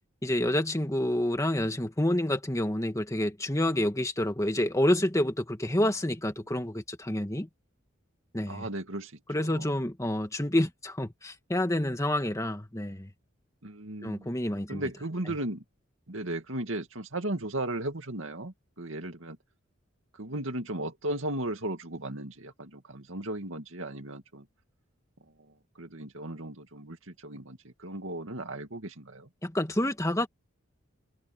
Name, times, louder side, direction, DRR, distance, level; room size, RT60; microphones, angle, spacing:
voice 1, 0.2-7.5 8.3-8.7 9.3-13.1 14.0-14.9 29.4-30.3, left 1 dB, 15° left, 1.8 m, -28 dB
voice 2, 8.5-9.1 9.4-9.7 13.6-14.3 14.7-15.6 16.1-19.4 20.2-24.4 25.8-29.3, right 1 dB, 70° right, 2.5 m, -36 dB
head